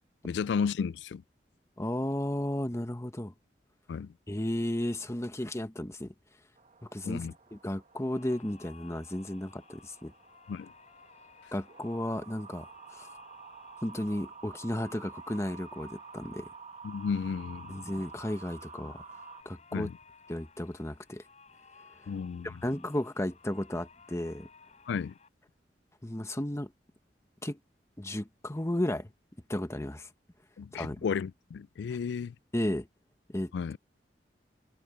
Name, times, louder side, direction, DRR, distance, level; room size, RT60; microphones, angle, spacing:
voice 1, 0.2-1.2 3.9-4.1 7.0-7.3 10.5-10.7 16.8-17.8 19.7-19.9 22.1-22.5 24.9-25.1 30.6-32.3 33.5-33.8, left 6 dB, 75° left, 0.3 m, -33 dB
voice 2, 1.8-3.3 4.3-6.1 6.9-10.1 11.5-12.6 12.9-13.1 13.8-16.5 17.7-19.0 19.4-19.9 20.3-21.2 22.4-24.5 26.0-26.7 27.4-27.6 28.0-29.1 29.5-30.1 30.7-31.1 32.5-32.9 33.3-33.5, left 1 dB, 15° left, 1.2 m, -34 dB
sound 1, 6.6-19.4, right 5 dB, 45° right, 1.2 m, -50 dB
sound 2, 7.9-25.3, left 5 dB, 40° left, 6.7 m, -58 dB
head